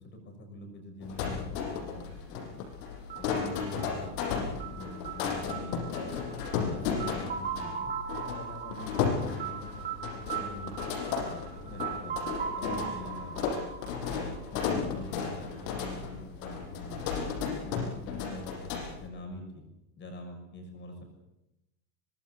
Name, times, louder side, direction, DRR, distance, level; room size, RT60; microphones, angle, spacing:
voice 1, 0.0-2.6 3.2-6.1 6.5-7.9 8.3-9.8 10.1-10.8 11.2-13.7 14.1-17.2 17.6-19.6 20.0-21.0, left 1 dB, 20° left, 4 dB, 6.5 m, -44 dB
sound 1, 1.0-19.1, left 6 dB, 75° left, 7.2 m, -34 dB
sound 2, 3.1-14.9, right 7 dB, 20° right, 2.8 m, -39 dB
25.0 x 19.5 x 7.6 m, 0.93 s
supercardioid pair, 175°, 49 cm